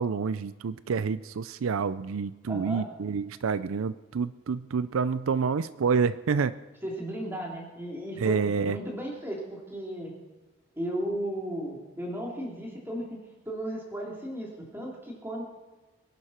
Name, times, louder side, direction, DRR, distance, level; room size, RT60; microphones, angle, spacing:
voice 1, 0.0-6.6 8.2-8.8, right 5 dB, 80° right, 15 dB, 0.4 m, -28 dB
voice 2, 2.5-2.9 6.8-10.1 10.7-15.4, right 1 dB, 10° right, -3 dB, 3.2 m, -35 dB
23.5 x 11.0 x 4.4 m, 1.2 s
head